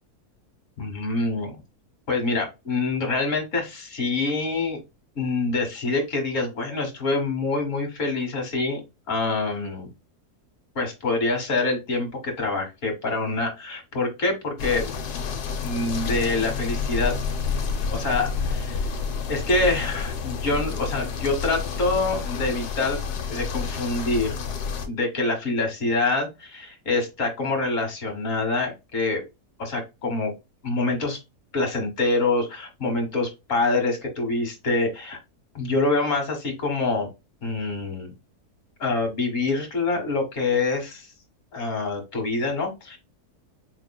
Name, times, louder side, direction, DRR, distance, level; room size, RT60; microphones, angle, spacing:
voice 1, 0.8-1.6 2.1-4.8 5.2-8.8 9.1-9.9 10.8-14.9 15.6-17.2 17.9-18.8 19.3-23.0 23.3-24.4 24.8-29.2 29.6-30.3 30.6-31.2 31.5-35.2 35.5-37.1 37.4-38.1 38.8-41.1 41.5-43.0, left 3 dB, 55° left, 3 dB, 1.8 m, -26 dB
sound 1, 14.6-24.9, left 5 dB, 85° left, 1.3 m, -29 dB
4.7 x 3.1 x 2.2 m, 0.24 s
omnidirectional pair, 1.7 m